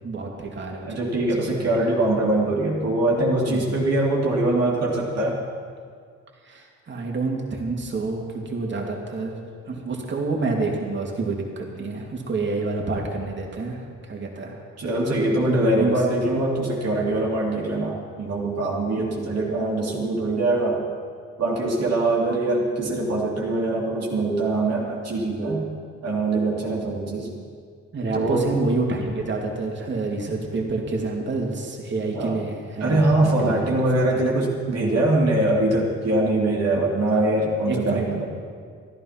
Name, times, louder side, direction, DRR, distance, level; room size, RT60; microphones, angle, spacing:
voice 1, 0.0-0.9 1.3-1.9 3.5-3.7 6.4-9.4 9.7-14.6 15.6-15.9 19.0-19.2 27.9-33.7 37.7-38.1, right 3 dB, 40° right, 0 dB, 2.6 m, -28 dB
voice 2, 0.8-5.4 14.8-20.8 21.4-25.7 26.0-27.3 28.1-28.5 32.1-32.4 32.8-38.3, right 2 dB, 55° right, -3 dB, 2.6 m, -23 dB
14.0 x 11.5 x 5.8 m, 2.1 s
cardioid pair, 90°, 30 cm